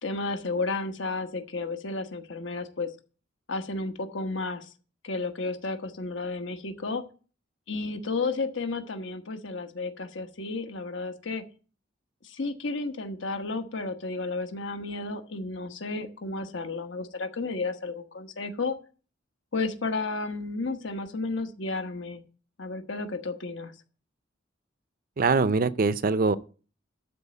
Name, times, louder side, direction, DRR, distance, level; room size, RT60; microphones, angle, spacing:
voice 1, 0.0-2.9 3.5-4.7 5.0-7.0 7.7-11.4 12.2-18.8 19.5-22.2 22.6-23.7, left 3 dB, 70° left, 1.2 m, -32 dB
voice 2, 25.2-26.4, right 4 dB, 45° right, 0.5 m, -23 dB
12.5 x 4.2 x 8.1 m
head